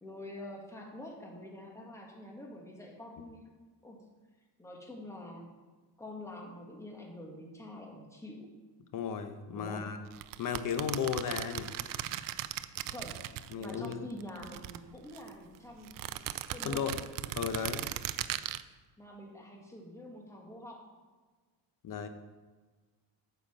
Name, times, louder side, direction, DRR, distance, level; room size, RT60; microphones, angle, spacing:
voice 1, 0.0-3.4 3.8-4.1 4.6-5.6 6.0-8.5 9.5-10.0 12.8-13.3 13.6-16.0 16.5-16.9 19.0-20.9, left 1 dB, 5° left, 0 dB, 1.8 m, -46 dB
voice 2, 8.9-10.0 10.4-11.7 13.5-14.0 16.6-17.0 17.3-17.9 21.8-22.1, left 7 dB, 50° left, 8 dB, 0.9 m, -34 dB
sound 1, 10.1-13.9 14.2-15.3 15.8-18.6, right 13 dB, 50° right, 0.5 m, -38 dB
9.2 x 5.9 x 7.2 m, 1.4 s
cardioid pair, 140°, 43 cm